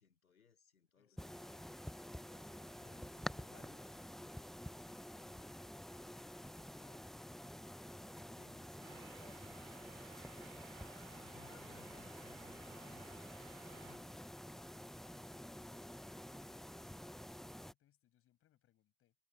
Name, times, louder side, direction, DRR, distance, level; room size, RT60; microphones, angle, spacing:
voice 1, 0.0-1.7 2.8-3.8 8.4-9.4 11.1-13.2 13.7-14.2, left 6 dB, 90° left, 3.8 m, -66 dB
voice 2, 0.9-1.6 15.1-19.2, left 13 dB, 30° left, 6.7 m, -76 dB
sound 1, 1.2-17.7, left 1 dB, ahead, 0.7 m, -50 dB
sound 2, 8.8-14.0, right 9 dB, 80° right, 2.5 m, -60 dB
hypercardioid pair, 105°, 41 cm